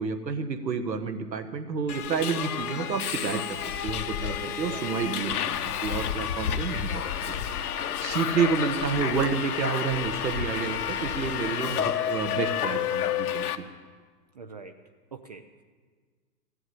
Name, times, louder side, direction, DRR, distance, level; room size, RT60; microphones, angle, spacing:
voice 1, 0.0-5.3 5.6-7.4 8.0-13.6, right 5 dB, 80° right, 7 dB, 1.6 m, -30 dB
Subway metro underground, 1.9-13.6, left 9 dB, 60° left, 1.0 m, -30 dB
voice 2, 4.4-5.0 8.0-8.3 14.3-14.8 15.1-15.5, right 4 dB, 25° right, 7 dB, 0.4 m, -44 dB
15.0 x 7.9 x 9.7 m, 1.5 s
figure-of-eight pair, 120°, 50 cm